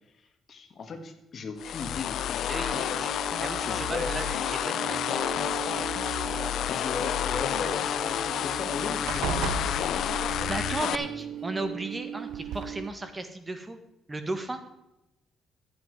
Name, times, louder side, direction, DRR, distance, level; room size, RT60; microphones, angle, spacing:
voice 1, 0.1-4.2 6.4-11.2, left 4 dB, 50° left, 7 dB, 1.6 m, -39 dB
sound 1, 1.6-11.0, left 11 dB, 75° left, 0.4 m, -30 dB
voice 2, 2.5-3.1 3.4-6.7 7.3-7.7 10.1-10.2 10.5-13.8 14.1-14.6, right 2 dB, 20° right, 8 dB, 1.4 m, -36 dB
sound 2, 2.6-12.9, right 9 dB, 65° right, 0.9 m, -39 dB
sound 3, 4.1-4.6 5.5-6.3 8.1-8.2 8.5-8.7 9.1-10.5 11.7-11.8 12.3-12.7, right 9 dB, 85° right, 0.6 m, -36 dB
13.0 x 8.6 x 4.7 m, 0.91 s
cardioid pair, 90°, 0 cm